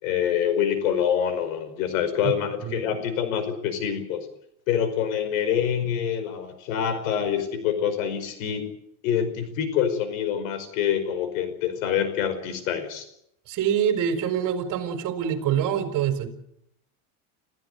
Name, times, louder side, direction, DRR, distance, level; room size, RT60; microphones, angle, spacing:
voice 1, 0.0-4.3 4.7-8.7 9.0-13.0, left 8 dB, 80° left, 11 dB, 5.2 m, -26 dB
voice 2, 2.6-3.2 13.5-16.3, right 9 dB, 50° right, 7 dB, 4.6 m, -26 dB
26.5 x 15.0 x 8.0 m, 0.75 s
supercardioid pair, 135°, 40 cm